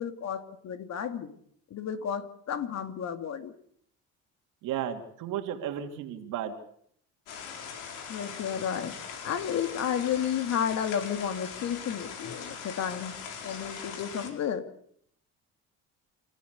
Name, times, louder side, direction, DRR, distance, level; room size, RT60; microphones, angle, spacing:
voice 1, 0.0-1.3 1.7-3.5 8.1-8.9 9.2-13.1 13.4-14.6, left 8 dB, 55° left, 9 dB, 2.4 m, -32 dB
voice 2, 4.6-6.5, right 10 dB, 80° right, 4 dB, 2.9 m, -34 dB
sound 1, 7.3-14.3, left 6 dB, 85° left, 4.7 m, -41 dB
28.0 x 14.5 x 8.2 m, 0.67 s
cardioid pair, 105°, 31 cm